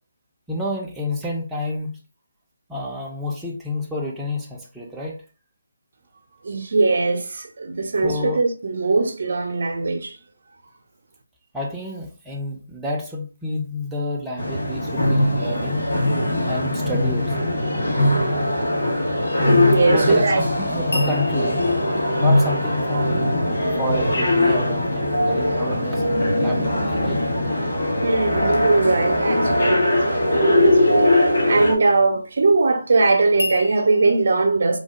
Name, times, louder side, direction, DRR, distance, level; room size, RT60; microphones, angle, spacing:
voice 1, 0.5-2.0 2.7-5.2 8.0-8.4 11.5-15.8 16.5-17.5 19.9-21.7 22.2-23.3 23.8-27.2, left 1 dB, 5° right, 0.4 m, -29 dB
voice 2, 6.4-10.2 19.4-20.4 28.0-29.8 30.3-34.8, right 3 dB, 55° right, 0.5 m, -20 dB
sound 1, 14.4-31.7, left 1 dB, 60° left, 1.3 m, -20 dB
sound 2, 20.9-24.0 33.4-34.2, left 2 dB, 75° left, 0.6 m, -33 dB
3.2 x 2.0 x 2.8 m
figure-of-eight pair, 155°, 0 cm